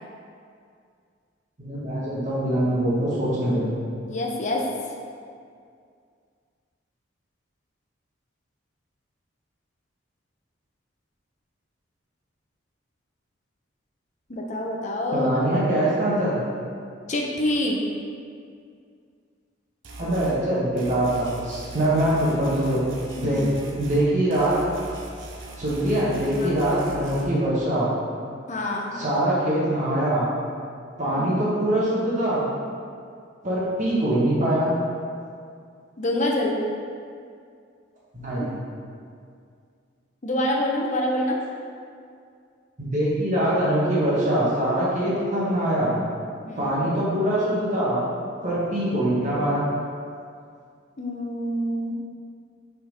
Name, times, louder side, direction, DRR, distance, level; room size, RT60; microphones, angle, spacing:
voice 1, 1.6-3.7 15.1-16.4 20.0-22.8 23.2-23.4 23.8-24.5 25.6-27.9 28.9-30.3 31.0-32.4 33.4-34.8 38.1-38.5 42.8-45.9 46.6-48.0 48.4-49.6, right 1 dB, 40° right, -8 dB, 1.4 m, -23 dB
voice 2, 4.1-4.6 14.3-15.3 17.1-17.8 23.2-23.4 26.4-26.5 28.5-29.0 31.1-31.4 36.0-36.6 40.2-41.4 46.4-46.7 51.0-52.0, left 1 dB, 40° left, 0 dB, 0.8 m, -26 dB
sound 1, 19.8-20.4 20.8-24.1 24.3-27.2, right 2 dB, 70° right, 0.9 m, -40 dB
5.7 x 4.0 x 5.1 m, 2.3 s
head